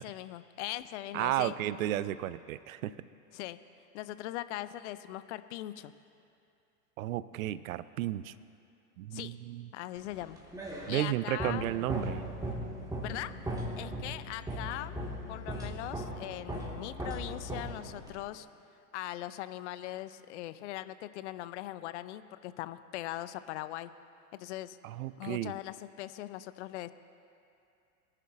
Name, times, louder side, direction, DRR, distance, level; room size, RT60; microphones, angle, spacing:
voice 1, 0.0-1.5 3.3-3.6 3.9-5.9 9.1-9.3 9.7-10.4 10.9-11.7 13.0-13.3 13.8-15.0 15.3-18.5 18.9-23.9 24.3-24.8 25.2-26.9, left 15 dB, 50° left, 14 dB, 0.5 m, -40 dB
voice 2, 1.1-2.9 7.0-8.3 9.0-9.7 10.9-12.3 24.8-25.5, right 14 dB, 60° right, 17 dB, 0.5 m, -33 dB
sound 1, 10.1-18.2, right 1 dB, 5° right, 1.8 m, -38 dB
22.5 x 10.5 x 2.6 m, 2.6 s
figure-of-eight pair, 90°, 49 cm